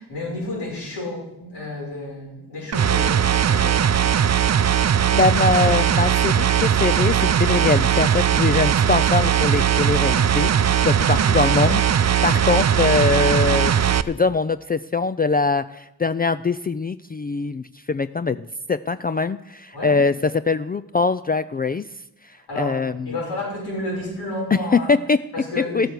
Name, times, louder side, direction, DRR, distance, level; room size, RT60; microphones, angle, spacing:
voice 1, 0.0-4.0 10.9-11.2 19.7-20.0 22.3-22.8 23.1-24.9 25.3-25.9, left 2 dB, 75° left, -3 dB, 6.0 m, -31 dB
sound 1, 2.7-14.0, right 9 dB, 40° right, 0.6 m, -19 dB
voice 2, 5.1-21.9 22.6-23.2 24.5-25.2 25.6-25.9, left 4 dB, 25° left, 12 dB, 0.4 m, -22 dB
13.0 x 7.7 x 6.7 m, 0.86 s
supercardioid pair, 45°, 40 cm